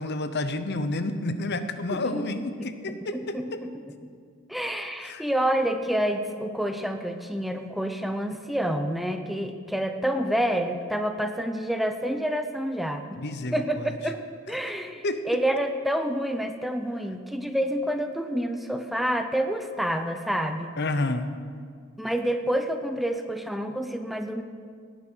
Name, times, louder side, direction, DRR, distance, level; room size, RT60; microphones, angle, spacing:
voice 1, 0.0-3.6 5.0-5.2 13.2-13.9 15.0-15.2 20.8-21.3, left 2 dB, 55° left, 10 dB, 0.9 m, -30 dB
voice 2, 1.9-2.7 3.1-3.7 4.5-13.2 13.5-14.2 14.5-20.7 22.0-24.4, equal, ahead, 6 dB, 0.7 m, -28 dB
18.0 x 9.5 x 6.2 m, 2.1 s
head